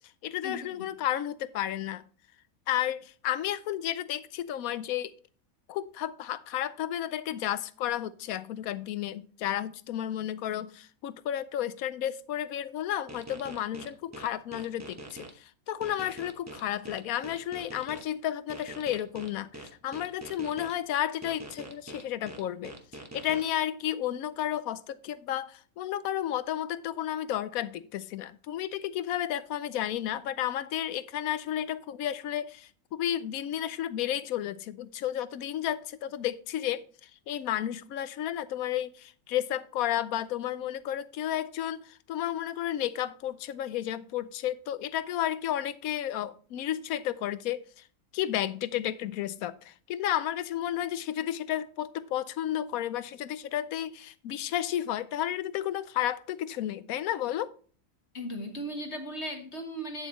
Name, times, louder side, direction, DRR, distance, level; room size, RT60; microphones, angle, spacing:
voice 1, 0.2-2.0 2.7-5.1 5.7-22.7 23.1-47.8 48.1-57.5, left 11 dB, 80° left, 1.0 m, -32 dB
sound 1, 13.1-15.3 15.8-18.0 18.5-20.7 21.2-23.4, right 1 dB, 15° right, 0.8 m, -44 dB
voice 2, 58.1-60.1, equal, 50° left, 1.5 m, -37 dB
9.1 x 7.8 x 3.0 m
omnidirectional pair, 1.5 m